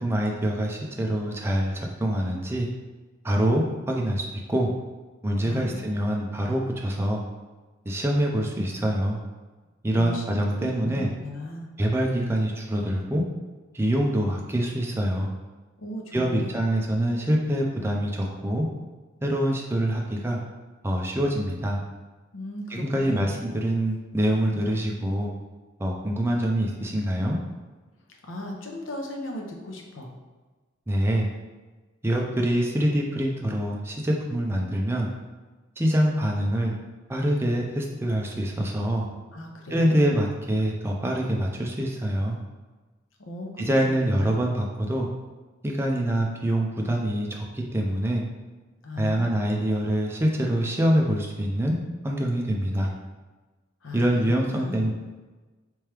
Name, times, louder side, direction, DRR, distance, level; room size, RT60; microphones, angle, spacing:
voice 1, 0.0-2.7 3.2-4.7 5.2-7.2 7.9-9.2 9.8-11.1 11.8-13.2 13.7-15.3 16.1-18.7 19.2-20.4 20.8-21.8 22.7-25.3 25.8-27.4 30.9-31.2 32.0-35.1 35.8-36.7 37.1-39.1 39.7-42.4 43.6-45.1 45.6-48.2 49.0-51.8 52.0-52.9 53.9-54.9, right 1 dB, 10° right, -1 dB, 0.4 m, -25 dB
voice 2, 5.4-5.9 9.9-10.2 10.6-11.7 15.8-16.6 22.3-23.3 28.3-30.1 39.3-39.9 43.2-44.4 48.8-49.3 53.8-54.8, left 1 dB, 90° left, 1 dB, 0.7 m, -37 dB
3.4 x 3.1 x 3.3 m, 1.3 s
head